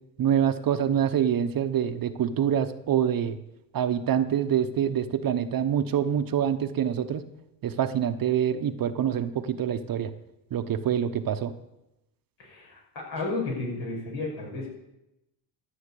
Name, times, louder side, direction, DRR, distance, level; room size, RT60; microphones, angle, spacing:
voice 1, 0.2-3.4 3.7-7.2 7.6-10.1 10.5-11.5, right 9 dB, 50° right, 10 dB, 0.9 m, -26 dB
voice 2, 12.4-14.7, left 3 dB, 70° left, -2 dB, 5.4 m, -33 dB
13.5 x 5.8 x 8.3 m, 0.90 s
cardioid pair, 100°, 45 cm